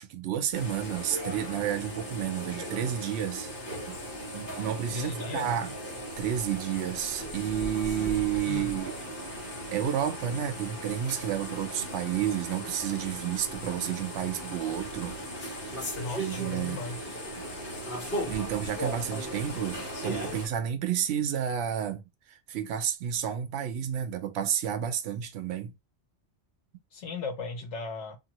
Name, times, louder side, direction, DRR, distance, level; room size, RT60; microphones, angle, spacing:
voice 1, 0.0-3.5 3.9-4.0 4.3-5.7 6.2-8.9 9.4-15.2 15.6-15.9 16.2-16.8 18.3-25.7, right 9 dB, 70° right, 0.8 m, -31 dB
sound 1, 0.5-20.5, equal, 50° left, 1.6 m, -37 dB
voice 2, 4.9-5.5 8.5-8.7 16.0-17.0 26.9-28.2, left 3 dB, 80° left, 1.2 m, -36 dB
2.7 x 2.6 x 2.9 m
omnidirectional pair, 1.2 m